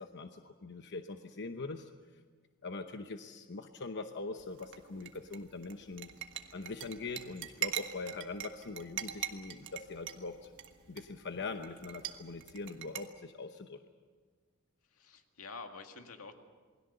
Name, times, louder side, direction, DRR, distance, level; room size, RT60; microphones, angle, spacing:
voice 1, 0.0-1.9 2.6-6.1 6.5-10.5 10.9-13.8, left 3 dB, 55° left, 7 dB, 0.9 m, -42 dB
sound 1, 4.4-13.1, right 11 dB, 60° right, 1.5 m, -43 dB
voice 2, 14.9-16.3, left 4 dB, 85° left, 5 dB, 2.1 m, -48 dB
28.0 x 20.5 x 6.8 m, 1.5 s
head